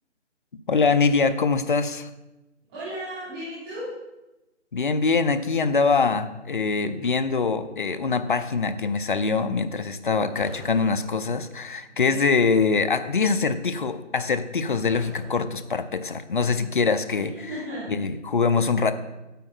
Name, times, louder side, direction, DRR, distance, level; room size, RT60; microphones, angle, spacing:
voice 1, 0.7-2.1 4.7-17.3 17.9-18.9, left 4 dB, 45° left, 11 dB, 0.5 m, -23 dB
voice 2, 2.7-3.9 11.8-12.2 17.3-17.9, equal, 20° right, -13 dB, 3.4 m, -35 dB
sound 1, 7.0-7.9 10.4-11.6 14.9-16.2, left 1 dB, 10° left, 0.9 m, -47 dB
9.1 x 8.5 x 4.3 m, 1.0 s
figure-of-eight pair, 165°, 36 cm